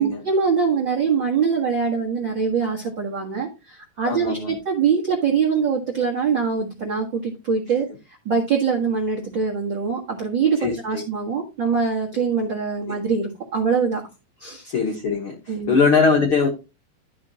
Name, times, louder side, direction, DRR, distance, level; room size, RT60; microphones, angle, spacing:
voice 1, 0.0-14.0 14.4-14.7 15.5-15.8, right 5 dB, 45° right, -3 dB, 1.5 m, -23 dB
voice 2, 4.0-4.6 10.6-11.0 14.6-16.5, left 5 dB, 60° left, 0 dB, 1.4 m, -21 dB
12.0 x 5.9 x 2.9 m, 0.27 s
omnidirectional pair, 4.7 m